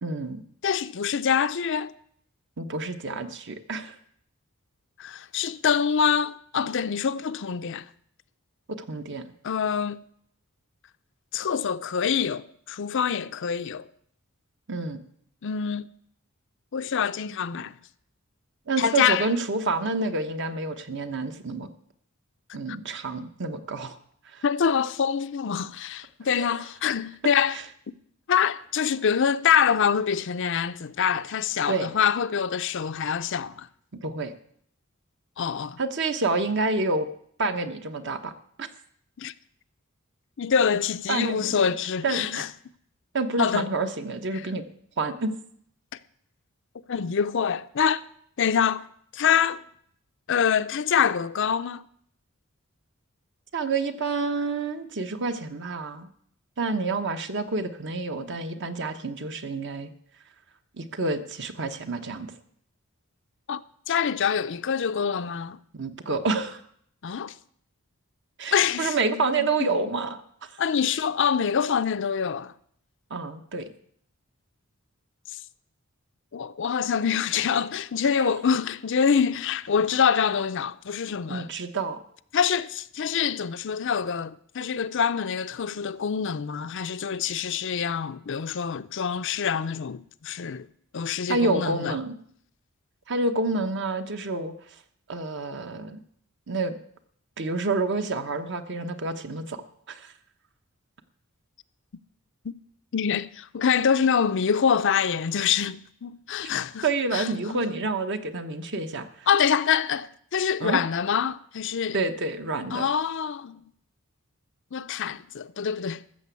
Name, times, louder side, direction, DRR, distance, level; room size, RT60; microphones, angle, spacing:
voice 1, 0.0-0.4 2.6-3.9 8.7-9.2 14.7-15.0 18.7-21.7 22.5-24.0 24.3-24.4 31.7-31.9 34.0-34.3 35.8-37.1 37.4-38.3 38.6-38.7 41.1-41.7 42.0-42.4 43.1-44.6 45.0-45.3 53.5-56.1 56.6-59.9 60.7-62.3 65.7-66.6 68.4-70.5 73.1-73.7 78.2-78.3 81.3-82.0 91.3-92.1 93.1-94.5 95.1-96.0 96.5-96.8 97.4-99.6 99.9-100.1 106.8-109.3 110.6-110.8 111.9-112.9, right 3 dB, 55° right, 1.1 m, -28 dB
voice 2, 0.6-1.9 5.0-7.9 9.4-10.0 11.3-13.9 15.4-15.9 16.7-17.7 18.8-19.3 22.7-22.8 24.4-27.6 28.3-33.7 35.4-35.8 39.2-39.3 40.4-42.5 43.4-43.7 46.9-48.0 48.4-48.9 49.1-49.6 50.3-51.8 63.5-63.6 63.9-65.6 67.0-67.3 68.5-69.7 70.6-72.5 76.3-81.5 82.3-90.7 90.9-91.9 102.4-102.5 102.9-106.9 107.1-107.6 109.3-112.0 112.7-113.6 114.7-116.0, left 7 dB, 60° left, 0.5 m, -25 dB
13.5 x 7.0 x 8.2 m
head